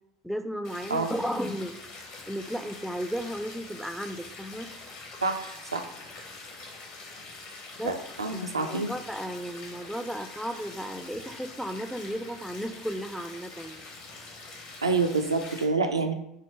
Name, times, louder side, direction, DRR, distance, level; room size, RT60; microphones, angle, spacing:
voice 1, 0.2-1.7 2.3-4.7 7.8-7.9 8.3-13.9, equal, ahead, 8 dB, 0.4 m, -34 dB
sound 1, 0.6-15.6, left 3 dB, 50° left, 1.1 m, -45 dB
voice 2, 5.2-5.9 7.8-8.9 14.8-16.1, right 3 dB, 85° right, 5 dB, 0.4 m, -27 dB
4.5 x 2.1 x 4.5 m, 0.80 s
figure-of-eight pair, 75°, 3 cm